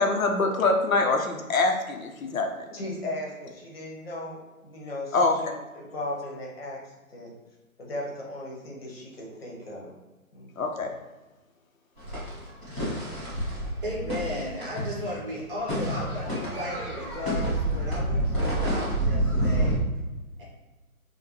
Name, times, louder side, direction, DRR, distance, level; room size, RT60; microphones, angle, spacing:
voice 1, 0.0-2.5 5.1-5.4 10.6-10.9, left 3 dB, 65° left, 3 dB, 0.6 m, -24 dB
voice 2, 2.7-7.3 7.8-9.9 10.3-10.5, left 1 dB, 40° left, -2 dB, 0.9 m, -37 dB
sound 1, 12.0-15.4 15.6-19.8, right 1 dB, ahead, 0.9 m, -28 dB
voice 3, 13.8-19.8 20.4-20.5, left 1 dB, 35° right, -4 dB, 1.2 m, -35 dB
5.0 x 2.2 x 2.9 m, 1.1 s
figure-of-eight pair, 155°, 44 cm